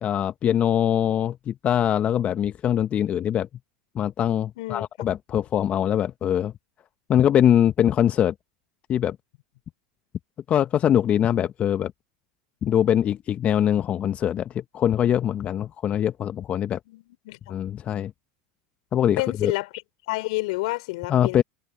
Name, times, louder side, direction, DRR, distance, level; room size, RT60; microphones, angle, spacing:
voice 1, 0.0-3.5 3.9-6.5 7.1-8.3 8.9-9.2 10.5-11.9 12.6-16.8 17.5-18.1 18.9-19.5 21.1-21.4, left 10 dB, 35° left, 1.0 m, -22 dB
voice 2, 16.9-17.6 19.2-19.7 20.1-21.4, left 22 dB, 65° left, 3.8 m, -29 dB
hypercardioid pair, 90°, 4 cm